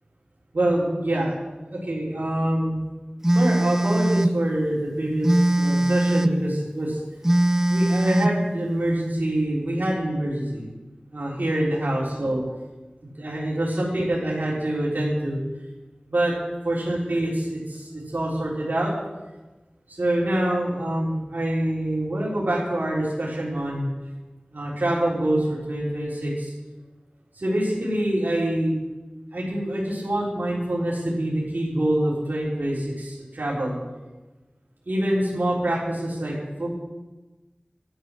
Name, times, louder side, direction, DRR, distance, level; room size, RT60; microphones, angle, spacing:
voice 1, 0.5-1.3 1.7-2.8 3.3-7.0 7.7-10.8 11.1-12.4 13.2-15.4 16.1-16.3 16.6-18.9 19.9-23.9 24.5-26.5 27.4-28.8 29.3-33.7 34.9-36.7, right 1 dB, 90° right, -6 dB, 3.8 m, -25 dB
Telephone, 3.2-4.4 5.2-6.4 7.2-8.4, right 1 dB, 15° right, 0.7 m, -20 dB
12.5 x 9.4 x 6.3 m, 1.2 s
wide cardioid pair, 50°, 3 cm